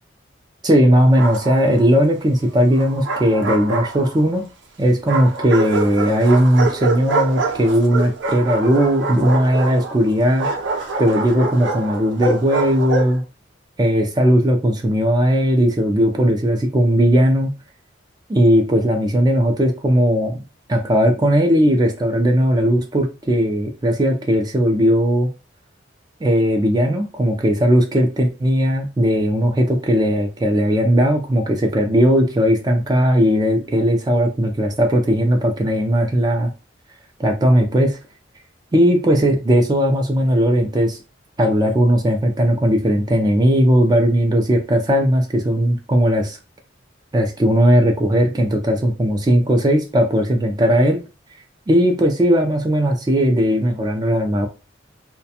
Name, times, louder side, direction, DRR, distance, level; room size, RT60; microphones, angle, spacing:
voice 1, 0.6-4.5 4.8-10.5 11.0-13.2 13.8-17.5 18.3-20.4 20.7-25.3 26.2-36.5 37.2-38.0 38.7-41.0 41.4-46.4 47.1-51.0 51.7-54.5, equal, 20° right, 3 dB, 0.4 m, -17 dB
Bark, 0.9-1.8 2.8-4.4 5.1-13.2, right 3 dB, 70° right, 0.6 m, -25 dB
2.4 x 2.1 x 2.7 m, 0.31 s
head